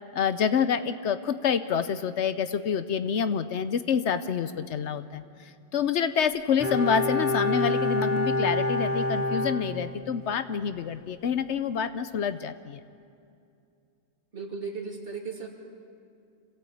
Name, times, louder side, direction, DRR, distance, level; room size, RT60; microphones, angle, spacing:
voice 1, 0.1-5.2 5.7-12.8, left 7 dB, 75° left, 12 dB, 1.0 m, -27 dB
Bowed string instrument, 6.6-10.3 10.6-10.7, left 2 dB, 10° right, 2.8 m, -27 dB
voice 2, 14.3-15.5, right 5 dB, 50° right, -1 dB, 2.9 m, -36 dB
26.0 x 16.0 x 8.5 m, 2.5 s
omnidirectional pair, 1.2 m